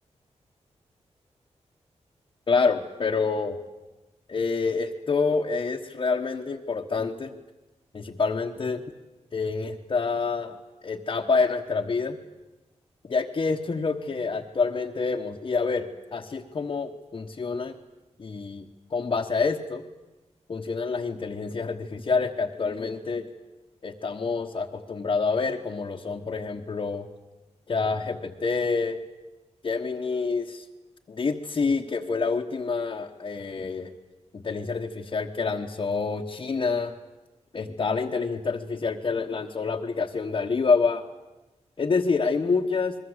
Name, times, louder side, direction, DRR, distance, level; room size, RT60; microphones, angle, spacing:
voice 1, 2.5-3.6 4.3-7.3 7.9-8.8 9.3-10.6 10.8-12.2 13.0-17.8 18.2-19.8 20.5-23.2 23.8-27.1 27.7-29.0 29.6-30.6 31.1-33.9 34.3-36.9 37.5-41.0 41.8-43.0, left 4 dB, 45° left, 0 dB, 1.3 m, -27 dB
28.0 x 22.0 x 8.1 m, 1.1 s
wide cardioid pair, 160°, 12 cm